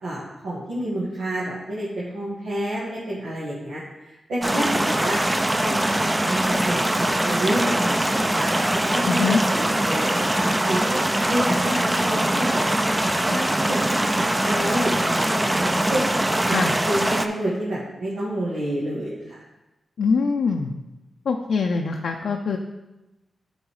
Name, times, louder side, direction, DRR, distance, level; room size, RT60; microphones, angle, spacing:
voice 1, 0.0-5.2 5.6-8.5 8.9-10.1 10.4-11.0 11.3-12.8 13.3-16.1 16.4-16.6 16.9-19.4, right 1 dB, 90° right, -9 dB, 1.8 m, -29 dB
sound 1, 4.4-17.3, right 1 dB, 20° right, 0.5 m, -22 dB
voice 2, 9.1-9.4 16.5-16.7 20.0-20.7 21.3-22.6, left 5 dB, 80° left, 1 dB, 0.5 m, -23 dB
9.2 x 4.0 x 4.8 m, 1.0 s
cardioid pair, 65°, 0 cm